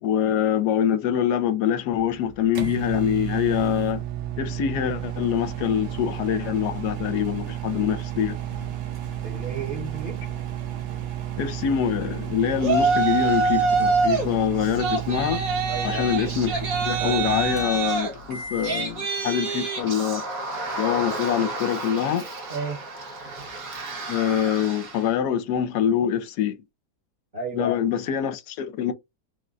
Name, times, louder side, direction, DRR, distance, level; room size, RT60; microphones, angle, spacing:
voice 1, 0.0-4.0 4.4-8.4 11.4-15.4 15.8-20.3 20.8-22.3 24.1-26.6 27.5-28.9, left 9 dB, 80° left, 1.1 m, -25 dB
sound 1, 2.0-18.9, right 10 dB, 85° right, 1.4 m, -32 dB
voice 2, 9.2-10.2 15.7-16.1 22.5-22.8 27.3-27.7, right 2 dB, 35° right, 1.1 m, -32 dB
Yell, 12.6-14.3 14.6-25.0, right 4 dB, 60° right, 1.6 m, -27 dB
3.7 x 2.1 x 3.8 m
omnidirectional pair, 1.8 m